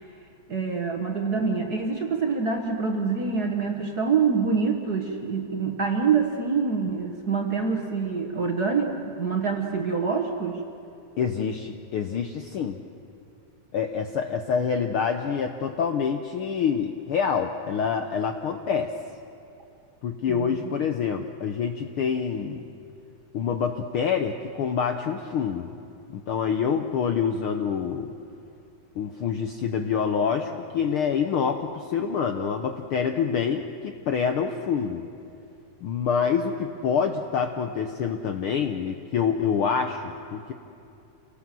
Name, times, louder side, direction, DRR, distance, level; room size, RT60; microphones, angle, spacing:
voice 1, 0.5-10.6 20.3-20.6, right 5 dB, 45° right, 2 dB, 1.4 m, -26 dB
voice 2, 11.2-12.8 13.7-18.9 20.0-22.7 23.3-25.7 26.1-28.1 29.0-35.0 35.8-40.5, left 6 dB, 70° left, 6 dB, 1.3 m, -26 dB
28.0 x 18.0 x 7.6 m, 2.7 s
omnidirectional pair, 3.3 m